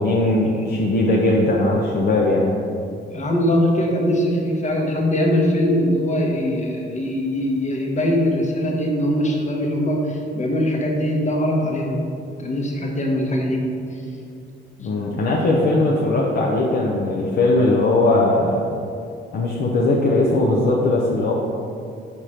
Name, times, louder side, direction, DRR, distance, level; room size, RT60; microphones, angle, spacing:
voice 1, 0.0-2.5 14.8-18.6 19.3-21.3, left 2 dB, 55° left, -3 dB, 0.7 m, -19 dB
voice 2, 3.1-12.1 12.4-13.6, left 1 dB, 35° left, -1 dB, 1.1 m, -21 dB
4.7 x 4.4 x 4.9 m, 2.5 s
cardioid pair, 90°, 20 cm